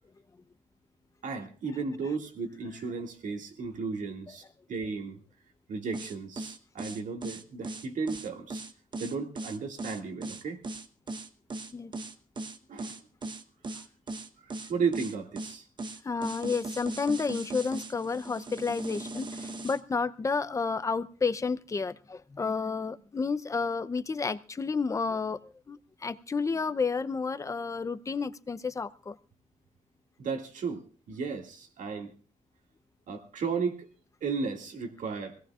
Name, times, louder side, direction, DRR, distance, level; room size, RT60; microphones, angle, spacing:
voice 1, 1.2-4.4 4.7-5.2 5.7-8.6 9.0-10.6 12.7-13.0 14.4-15.7 30.2-32.1 33.1-33.9 34.2-35.4, right 5 dB, 70° right, 4 dB, 2.2 m, -34 dB
sound 1, 5.9-19.8, right 2 dB, 35° right, 1.0 m, -38 dB
voice 2, 16.0-29.2, left 4 dB, 25° left, 14 dB, 0.6 m, -31 dB
25.0 x 17.5 x 2.4 m, 0.37 s
wide cardioid pair, 140°, 13 cm